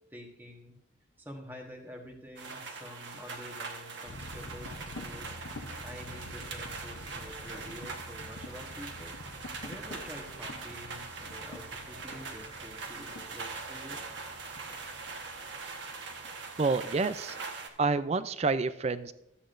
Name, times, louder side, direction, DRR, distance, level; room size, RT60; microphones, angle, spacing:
voice 1, 0.1-0.8 1.2-5.4 5.8-9.2 9.6-14.0, equal, 10° right, 1 dB, 1.3 m, -48 dB
sound 1, 2.4-17.7, right 4 dB, 65° right, 1.3 m, -42 dB
sound 2, 4.1-17.7, left 2 dB, 65° left, 0.7 m, -47 dB
voice 2, 16.6-17.4 17.8-19.1, right 4 dB, 35° right, 14 dB, 0.4 m, -28 dB
13.5 x 8.3 x 2.6 m, 0.79 s
head